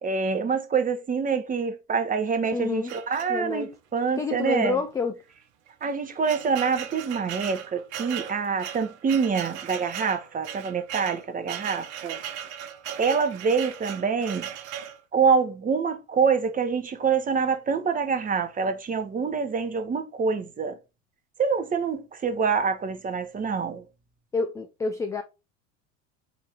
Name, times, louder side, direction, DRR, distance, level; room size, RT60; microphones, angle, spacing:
voice 1, 0.0-4.8 5.8-12.2 13.0-14.5 15.1-20.8 21.4-23.8, right 5 dB, 20° right, 0.9 m, -26 dB
voice 2, 2.5-2.9 3.3-3.7 4.2-5.2 24.3-25.2, left 4 dB, 10° left, 0.3 m, -28 dB
sound 1, 2.9-3.7 4.5-4.6 4.9-5.0 5.7-15.0, right 9 dB, 60° right, 0.8 m, -37 dB
4.8 x 2.7 x 3.5 m
figure-of-eight pair, 75°, 38 cm